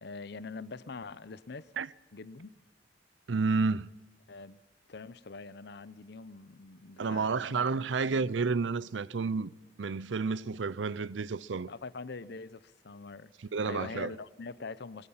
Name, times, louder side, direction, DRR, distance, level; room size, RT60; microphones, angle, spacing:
voice 1, 0.0-1.7 2.1-2.5 4.3-4.6 4.9-7.7 8.0-8.3 11.7-13.3 13.6-15.1, left 4 dB, 65° left, 0.7 m, -44 dB
voice 2, 3.3-3.9 7.0-9.5 9.8-11.7 13.5-14.1, right 4 dB, 90° right, 0.6 m, -30 dB
22.0 x 22.0 x 5.7 m
head